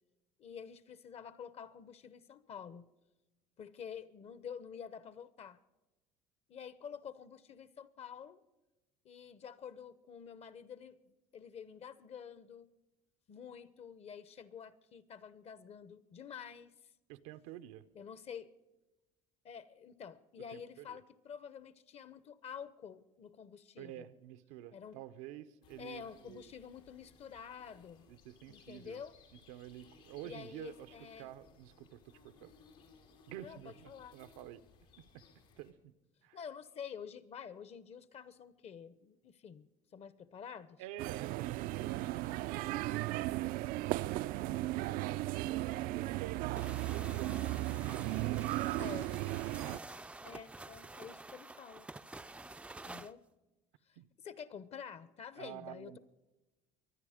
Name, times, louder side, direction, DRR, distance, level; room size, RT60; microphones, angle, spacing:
voice 1, 0.4-2.9 3.6-5.6 6.5-8.4 9.0-12.7 13.3-16.7 17.9-18.5 19.4-24.1 24.7-25.0 25.8-28.1 28.5-29.2 30.2-31.3 33.4-34.1 36.3-40.8 48.8-49.1 50.2-51.9 52.8-53.2 53.9-56.0, left 7 dB, 40° left, 17 dB, 0.9 m, -49 dB
voice 2, 17.1-17.8 20.5-21.0 23.8-26.4 28.1-29.0 29.5-32.5 33.3-34.6 35.0-35.2 35.6-35.7 36.2-36.4 40.8-43.8 44.1-46.0 46.9-48.9 54.0-54.1 55.4-56.0, right 13 dB, 90° right, 11 dB, 0.8 m, -49 dB
sound 1, 25.6-35.7, left 5 dB, 85° left, 3.1 m, -63 dB
sound 2, 41.0-49.8, right 17 dB, 65° right, 0.4 m, -36 dB
sound 3, 46.5-53.1, right 2 dB, 5° right, 0.4 m, -49 dB
23.5 x 9.8 x 5.0 m, 1.1 s
cardioid pair, 115°, 16 cm